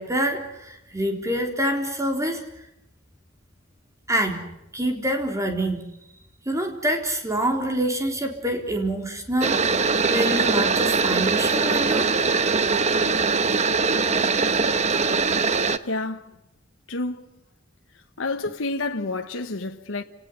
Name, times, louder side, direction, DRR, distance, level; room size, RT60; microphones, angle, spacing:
voice 1, 0.0-2.5 4.1-4.4 4.7-5.8 6.5-9.7 10.1-12.1, right 1 dB, 15° right, 4.0 m, -26 dB
sound 1, 9.4-15.8, right 4 dB, 35° right, 1.1 m, -22 dB
voice 2, 15.8-16.3 16.9-17.2 18.2-20.0, left 2 dB, 80° left, 1.2 m, -29 dB
29.5 x 19.0 x 8.4 m
head